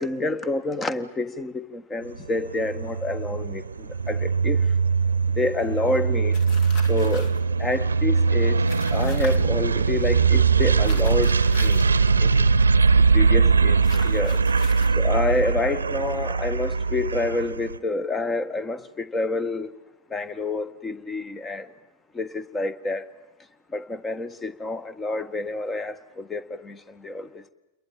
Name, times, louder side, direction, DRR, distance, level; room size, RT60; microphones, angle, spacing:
voice 1, 0.0-4.6 5.4-6.4 6.9-7.3 7.6-8.6 8.9-11.3 11.6-11.8 12.2-12.5 13.1-13.8 14.0-14.4 15.0-19.7 20.1-21.7 22.1-23.0 23.7-27.5, left 2 dB, 15° left, 1.7 m, -28 dB
sound 1, 2.1-17.8, right 5 dB, 75° right, 0.9 m, -21 dB
sound 2, 6.3-7.4 8.7-9.4 10.8-11.9 13.8-15.0, left 4 dB, 45° left, 4.1 m, -41 dB
29.0 x 22.0 x 9.3 m
figure-of-eight pair, 90°, 0 cm